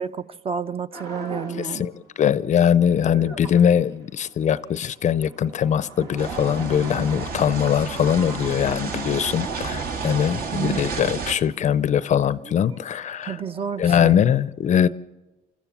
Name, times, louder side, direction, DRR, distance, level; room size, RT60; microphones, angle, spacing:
voice 1, 0.0-1.9 10.5-10.8 13.2-14.1, right 7 dB, 35° right, 0.7 m, -30 dB
sound 1, 0.9-2.1 2.5-14.1, right 3 dB, 80° right, 2.5 m, -42 dB
voice 2, 1.6-1.9 2.2-13.4 13.8-14.9, left 9 dB, 45° left, 0.6 m, -21 dB
sound 2, 6.2-11.4, right 5 dB, 60° right, 1.7 m, -31 dB
25.5 x 14.0 x 7.2 m
cardioid pair, 110°, 17 cm